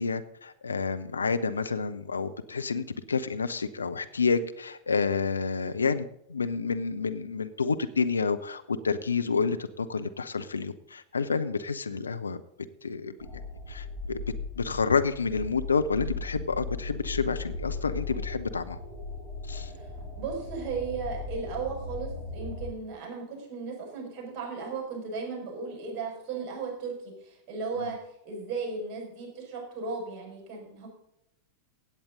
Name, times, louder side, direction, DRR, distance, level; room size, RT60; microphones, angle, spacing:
voice 1, 0.0-12.4 12.8-13.3 13.7-14.2 14.6-18.8 19.5-19.7 27.8-27.9, left 5 dB, 75° left, 11 dB, 0.6 m, -29 dB
sound 1, 13.2-22.7, left 3 dB, 10° right, 5.7 m, -38 dB
voice 2, 19.6-28.0 28.2-30.9, right 5 dB, 35° right, 1 dB, 5.9 m, -36 dB
16.5 x 8.7 x 3.9 m, 0.79 s
figure-of-eight pair, 90°, 0 cm